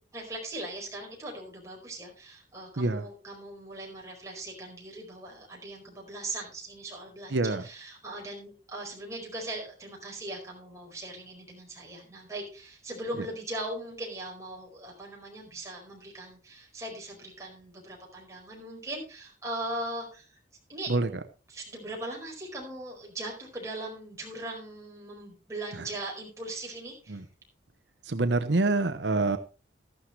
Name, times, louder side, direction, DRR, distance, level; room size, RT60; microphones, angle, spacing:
voice 1, 0.1-20.4 20.7-20.9 21.5-27.2, right 1 dB, 15° right, -1 dB, 4.7 m, -39 dB
voice 2, 7.3-7.6 20.9-21.1 27.1-27.2 28.0-29.4, right 2 dB, 80° right, 9 dB, 0.8 m, -26 dB
13.0 x 12.0 x 3.2 m, 0.34 s
head